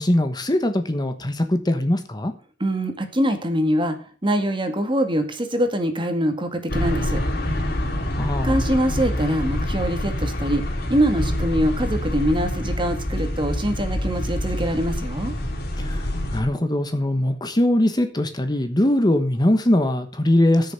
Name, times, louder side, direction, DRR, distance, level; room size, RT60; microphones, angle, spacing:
voice 1, 0.0-2.3 8.1-8.6 15.8-20.7, left 1 dB, 25° left, 8 dB, 1.2 m, -21 dB
voice 2, 2.6-4.0 4.2-7.2 8.4-10.6 10.9-15.3, equal, 30° right, 7 dB, 2.1 m, -23 dB
sound 1, 6.7-16.4, left 1 dB, 60° left, 3.1 m, -26 dB
14.0 x 6.8 x 6.5 m, 0.37 s
head